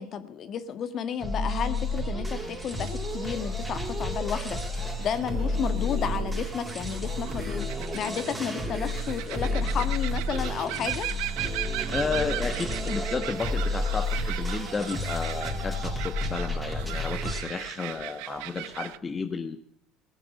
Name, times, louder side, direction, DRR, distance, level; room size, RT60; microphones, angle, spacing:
voice 1, 0.0-11.1, left 8 dB, 45° left, 10 dB, 1.7 m, -32 dB
sound 1, 1.2-17.4, left 1 dB, 10° right, 4.1 m, -31 dB
sound 2, 2.5-19.0, right 18 dB, 75° right, 0.6 m, -39 dB
voice 2, 11.9-19.6, left 4 dB, 25° left, 7 dB, 1.1 m, -32 dB
18.0 x 7.4 x 8.4 m, 0.66 s
supercardioid pair, 95°, 0 cm